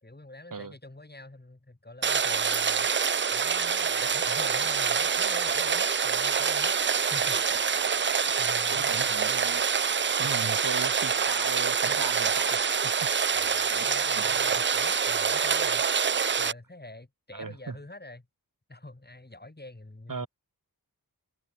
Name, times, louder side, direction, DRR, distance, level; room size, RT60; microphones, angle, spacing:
voice 1, 0.0-2.9 3.3-7.8 8.2-9.1 13.3-15.8 16.4-18.3 18.7-20.3, left 2 dB, 25° left, 3.5 m, -46 dB
Rain, 2.0-16.5, right 6 dB, 35° right, 0.4 m, -26 dB
voice 2, 8.7-9.6 10.2-13.1 13.7-13.9 14.1-14.6 17.3-17.8 20.1-20.3, right 4 dB, 60° right, 1.7 m, -38 dB
wide cardioid pair, 55°, 36 cm